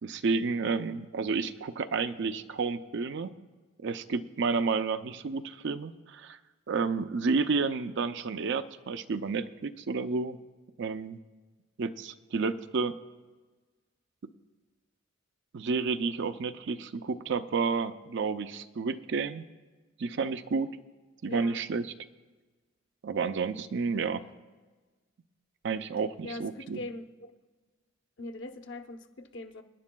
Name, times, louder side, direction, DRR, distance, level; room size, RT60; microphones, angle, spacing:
voice 1, 0.0-3.3 3.8-6.4 6.7-10.4 10.8-11.2 11.8-13.0 15.5-19.4 20.0-20.7 21.2-21.9 23.0-24.2 25.6-26.8, right 4 dB, 65° right, 10 dB, 0.5 m, -31 dB
voice 2, 21.3-21.6 26.2-27.3 28.2-29.6, left 2 dB, 65° left, 6 dB, 0.8 m, -41 dB
25.0 x 10.5 x 2.3 m, 1.3 s
head